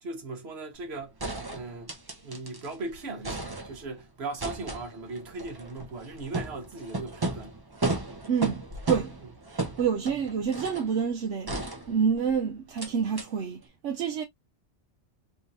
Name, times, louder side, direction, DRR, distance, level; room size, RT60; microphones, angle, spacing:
voice 1, 0.0-1.1 1.5-1.9 2.2-7.5, right 3 dB, 60° right, 1.4 m, -38 dB
sound 1, 0.7-0.8 1.2-2.7 3.0-4.0 4.4-10.9 11.5-12.3 12.8-12.9 13.2-13.3, right 2 dB, 20° right, 0.8 m, -35 dB
voice 2, 8.3-9.2 9.5-14.2, right 6 dB, 75° right, 1.0 m, -28 dB
3.5 x 3.4 x 2.6 m
omnidirectional pair, 1.2 m